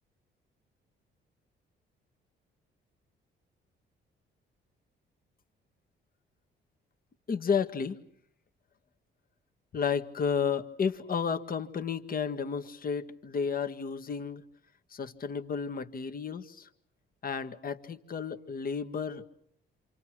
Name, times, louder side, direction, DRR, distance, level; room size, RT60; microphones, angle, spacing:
voice 1, 7.3-8.0 9.7-14.4 14.9-16.7 17.2-19.2, left 6 dB, 45° left, 8 dB, 1.8 m, -32 dB
27.5 x 26.5 x 6.2 m, 0.69 s
cardioid pair, 90°, 20 cm